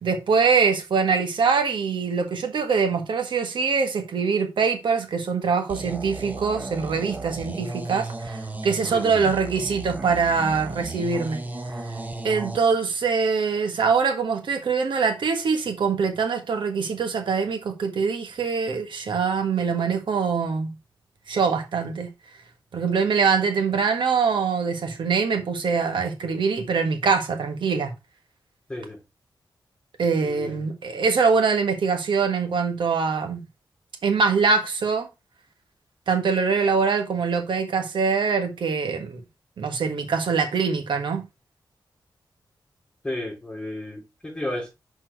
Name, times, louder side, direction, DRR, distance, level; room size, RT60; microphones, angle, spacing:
voice 1, 0.0-11.4 11.7-11.8 12.2-20.7 21.3-22.1 22.7-27.9 30.0-33.4 34.0-35.1 36.1-39.2 39.6-41.2, right 5 dB, 85° right, 1.5 m, -23 dB
sound 1, 5.7-12.6, right 2 dB, 20° right, 0.9 m, -34 dB
voice 2, 30.2-30.7 43.0-44.7, left 1 dB, 15° left, 3.7 m, -33 dB
6.2 x 4.5 x 4.6 m
wide cardioid pair, 125°, 8 cm